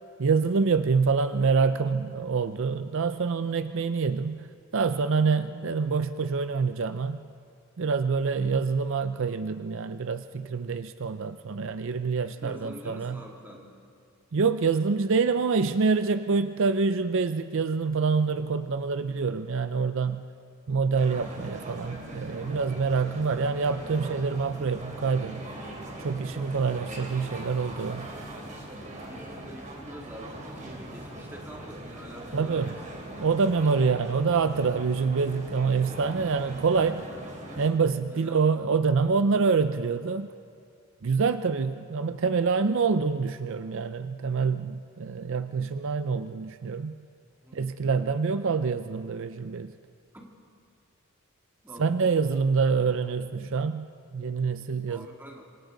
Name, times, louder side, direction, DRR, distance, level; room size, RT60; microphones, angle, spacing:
voice 1, 0.2-4.5 4.7-7.2 7.8-13.2 14.3-20.3 20.7-25.4 26.0-28.1 32.3-32.7 33.2-37.0 37.6-40.3 41.0-47.0 47.5-49.7 51.8-53.9 54.1-55.1, right 5 dB, 60° right, 10 dB, 0.5 m, -26 dB
voice 2, 8.3-8.7 12.4-13.8 29.0-32.7 38.1-38.4 47.4-47.6 50.1-50.3 51.6-52.1 54.9-55.4, equal, 10° right, -1 dB, 2.7 m, -46 dB
sound 1, 20.9-37.7, right 1 dB, 35° right, 3.5 m, -41 dB
26.5 x 26.0 x 3.9 m, 2.3 s
head